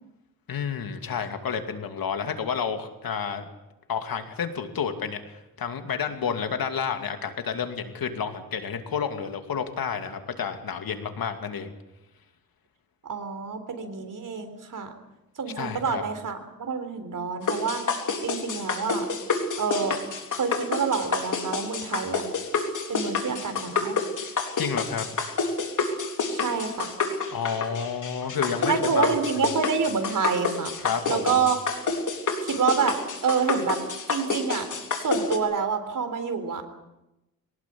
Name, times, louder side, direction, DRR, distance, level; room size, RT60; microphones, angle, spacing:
voice 1, 0.5-3.4 3.9-11.7 15.6-16.0 24.6-25.1 27.3-29.1 30.8-31.3, left 7 dB, 80° left, 6 dB, 2.6 m, -30 dB
voice 2, 13.0-14.9 15.4-17.9 18.2-19.1 19.6-20.0 20.3-22.2 22.9-24.0 26.3-26.9 28.7-30.7 31.1-31.6 32.4-33.0 33.2-33.8 34.1-34.7 35.0-36.6, right 5 dB, 60° right, 8 dB, 3.7 m, -27 dB
sound 1, 17.5-35.4, left 4 dB, 60° left, 3.8 m, -28 dB
23.5 x 19.0 x 8.7 m, 0.94 s
wide cardioid pair, 110°, 35 cm